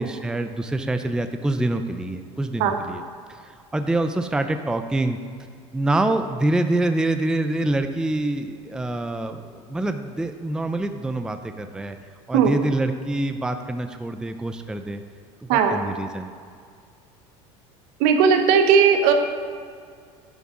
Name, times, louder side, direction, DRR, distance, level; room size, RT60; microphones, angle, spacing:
voice 1, 0.0-3.0 3.3-5.2 5.7-12.0 12.3-15.0 15.4-16.3, right 2 dB, 5° right, 8 dB, 0.4 m, -26 dB
voice 2, 18.0-19.1, right 7 dB, 70° right, 6 dB, 1.0 m, -17 dB
10.0 x 7.0 x 3.7 m, 2.1 s
supercardioid pair, 100°, 15 cm